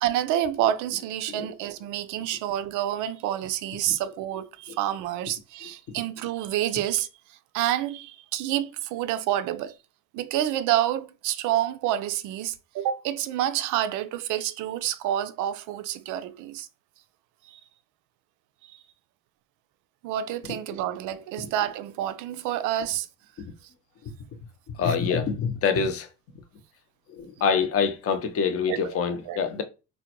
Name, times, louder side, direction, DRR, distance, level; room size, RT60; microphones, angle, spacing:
voice 1, 0.0-7.1 7.5-9.8 10.1-16.7 17.5-17.6 20.0-23.1 24.8-25.0 28.7-29.0 29.3-29.4, right 12 dB, 55° right, 0.5 m, -28 dB
voice 2, 24.8-26.1 27.1-29.6, left 6 dB, 35° left, 0.7 m, -25 dB
3.8 x 2.1 x 2.8 m
hypercardioid pair, 60°, 38 cm